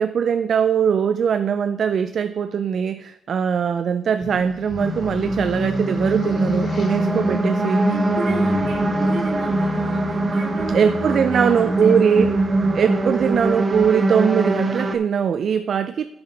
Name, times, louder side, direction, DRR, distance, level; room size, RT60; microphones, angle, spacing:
voice 1, 0.0-7.8 10.7-12.3 12.7-16.0, right 7 dB, 55° right, 11 dB, 0.4 m, -21 dB
sound 1, 4.2-14.9, left 5 dB, 45° left, 0.4 m, -33 dB
sound 2, 4.8-14.9, right 2 dB, 30° right, 0.8 m, -22 dB
voice 2, 7.9-12.3, right 2 dB, 75° right, -2 dB, 3.5 m, -33 dB
12.0 x 7.0 x 3.4 m, 0.85 s
cardioid pair, 90°, 0 cm